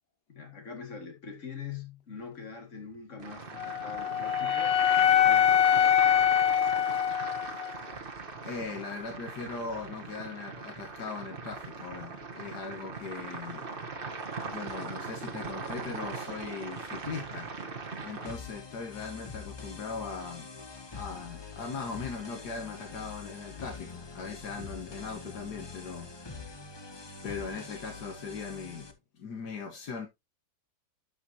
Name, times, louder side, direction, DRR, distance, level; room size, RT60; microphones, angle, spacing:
voice 1, 0.3-6.2, left 6 dB, 45° left, 2.5 m, -44 dB
sound 1, 3.2-18.3, right 4 dB, 35° right, 1.3 m, -40 dB
Wind instrument woodwind instrument, 3.6-7.8, left 9 dB, 60° left, 0.6 m, -24 dB
voice 2, 8.4-13.7 14.4-17.5 18.0-20.5 20.9-26.5 27.2-28.9 29.2-30.1, left 5 dB, 75° left, 1.8 m, -39 dB
sound 2, 18.2-28.9, left 4 dB, 25° left, 0.6 m, -44 dB
11.5 x 5.5 x 2.8 m
omnidirectional pair, 1.8 m